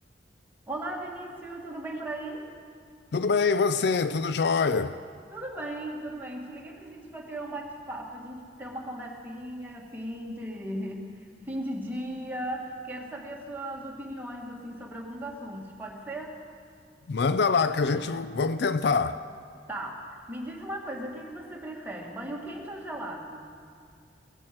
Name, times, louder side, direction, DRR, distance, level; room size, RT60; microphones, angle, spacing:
voice 1, 0.7-2.4 5.3-16.4 19.7-23.4, right 1 dB, 10° right, 1.9 m, -37 dB
voice 2, 3.1-5.0 17.1-19.2, left 4 dB, 60° left, 0.4 m, -25 dB
17.5 x 8.8 x 7.6 m
head